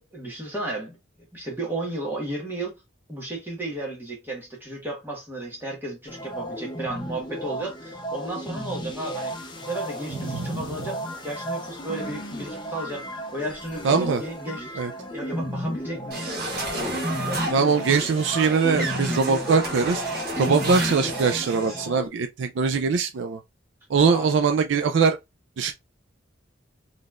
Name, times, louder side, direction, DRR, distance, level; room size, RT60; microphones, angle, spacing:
voice 1, 0.1-1.0 1.3-2.7 3.1-13.1 13.3-16.5 24.1-24.3, right 2 dB, 10° right, 1.5 m, -34 dB
sound 1, 6.1-22.1, equal, 25° left, 0.7 m, -33 dB
voice 2, 10.3-10.6 13.8-14.2 14.8-14.9 17.5-20.0 20.4-23.4 23.9-25.2 25.6-25.7, right 5 dB, 70° right, 0.4 m, -22 dB
sound 2, 16.1-21.8, right 2 dB, 50° right, 1.2 m, -32 dB
4.0 x 3.2 x 2.4 m
head